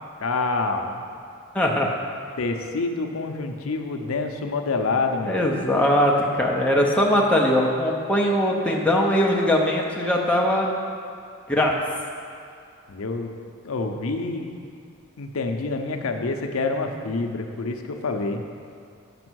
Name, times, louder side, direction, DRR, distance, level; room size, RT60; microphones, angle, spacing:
voice 1, 0.2-1.0 2.4-5.5 12.9-13.3 13.6-14.5 15.2-18.4, left 3 dB, 75° left, 4 dB, 0.6 m, -27 dB
voice 2, 1.5-1.9 5.3-10.7 11.5-11.7, left 1 dB, 5° left, -2 dB, 0.6 m, -21 dB
6.8 x 5.2 x 6.2 m, 2.4 s
head